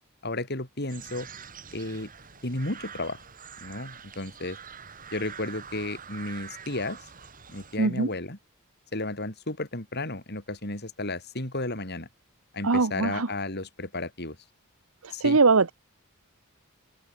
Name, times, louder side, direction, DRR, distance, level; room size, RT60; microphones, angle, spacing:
voice 1, 0.2-1.3 1.7-2.1 2.4-3.2 3.6-4.6 5.1-7.0 7.5-8.4 8.9-12.1 12.5-14.4 15.1-15.4, left 2 dB, 50° left, 5.1 m, -33 dB
sound 1, 0.9-7.8, right 7 dB, 40° right, 6.2 m, -45 dB
voice 2, 7.8-8.1 12.6-13.3 15.0-15.7, right 4 dB, 75° right, 1.1 m, -22 dB
open air
head